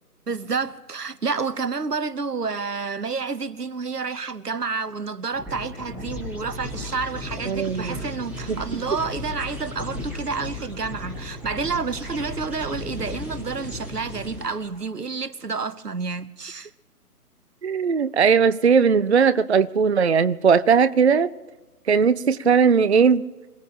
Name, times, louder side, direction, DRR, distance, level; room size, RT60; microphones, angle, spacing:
voice 1, 0.3-16.7, right 4 dB, 85° right, 1.0 m, -29 dB
sound 1, 5.3-14.8, left 1 dB, 5° right, 1.3 m, -35 dB
voice 2, 7.5-8.0 8.5-8.6 17.6-21.3 21.9-23.2, right 6 dB, 45° right, 0.4 m, -18 dB
26.5 x 17.5 x 2.9 m
figure-of-eight pair, 140°, 46 cm